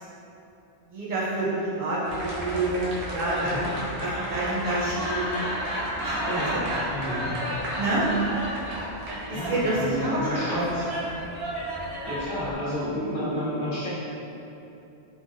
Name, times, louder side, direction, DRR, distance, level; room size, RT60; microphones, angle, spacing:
voice 1, 0.9-3.7 4.0-5.4 6.0-6.2 6.5-6.6 7.8-8.1 9.3-10.6 10.9-11.2, right 2 dB, 55° right, -7 dB, 0.6 m, -28 dB
sound 1, 2.1-12.5, right 1 dB, 85° right, 0.9 m, -32 dB
voice 2, 6.2-7.3 9.3-10.8 12.0-14.0, equal, 60° left, -8 dB, 0.8 m, -31 dB
3.2 x 2.2 x 2.5 m, 2.9 s
omnidirectional pair, 1.1 m